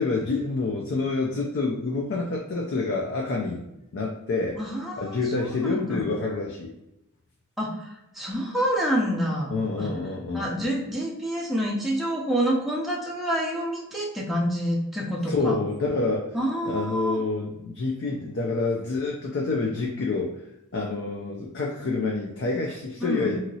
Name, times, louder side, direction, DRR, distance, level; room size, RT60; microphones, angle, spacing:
voice 1, 0.0-3.6 3.9-4.6 5.0-6.7 9.5-10.5 15.3-16.3 16.6-20.3 20.7-23.4, left 3 dB, 60° left, -2 dB, 0.4 m, -27 dB
voice 2, 4.6-6.0 7.6-7.9 8.1-9.9 10.3-15.6 16.3-17.2 23.0-23.4, equal, ahead, -4 dB, 0.5 m, -28 dB
2.9 x 2.7 x 2.7 m, 0.89 s
head